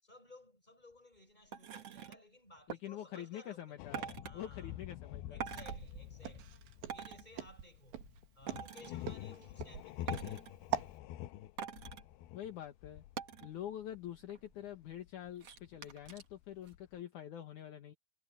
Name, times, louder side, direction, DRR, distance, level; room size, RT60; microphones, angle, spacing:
voice 1, 0.0-3.8 4.2-4.8 5.3-6.5 6.9-8.0 8.3-10.4, left 1 dB, 10° left, 6.6 m, -58 dB
sound 1, 1.5-2.2 2.7-2.8 3.9-4.3 5.4-5.8 6.9-7.2 8.5-8.9 10.1-10.5 11.6-12.0 13.2-13.5 13.9-14.0 14.2-14.7 15.4-16.2 16.7-16.8, right 8 dB, 50° right, 2.0 m, -44 dB
voice 2, 2.7-4.0 4.3-5.4 12.3-13.0 13.4-17.9, left 11 dB, 65° left, 2.1 m, -46 dB
sound 2, 3.8-14.3 14.5-17.0, left 13 dB, 80° left, 2.3 m, -47 dB
Walk footsteps, 5.6-10.9, right 10 dB, 75° right, 4.2 m, -42 dB
omnidirectional pair, 5.2 m